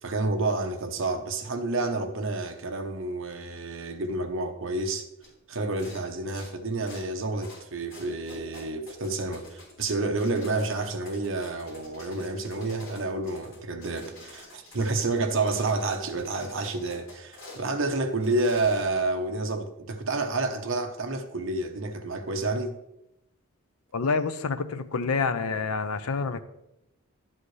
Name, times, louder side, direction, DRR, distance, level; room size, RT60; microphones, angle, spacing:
voice 1, 0.0-5.1 5.5-22.8, right 2 dB, 60° right, 1.0 m, -29 dB
sound 1, 5.2-5.3 5.7-6.0 6.3-7.0 7.4-7.6 7.9-17.6 18.1-19.1, left 2 dB, 65° left, 3.5 m, -48 dB
voice 2, 23.9-26.4, left 4 dB, 80° left, 0.6 m, -27 dB
12.0 x 7.6 x 3.2 m
head